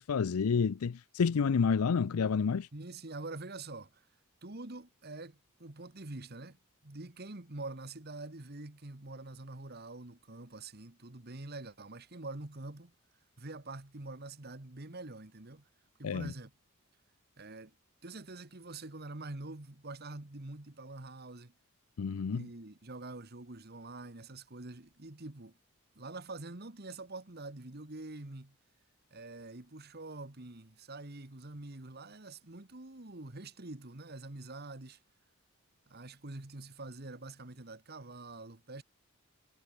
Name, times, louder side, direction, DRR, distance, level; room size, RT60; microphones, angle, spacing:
voice 1, 0.0-2.7 16.0-16.3 22.0-22.4, left 5 dB, 90° left, 0.5 m, -29 dB
voice 2, 2.7-4.1 4.4-12.9 13.4-15.7 16.0-16.5 17.4-17.7 18.0-21.5 22.3-25.6 25.9-28.6 29.1-35.0 35.9-38.8, right 2 dB, 45° right, 1.7 m, -45 dB
head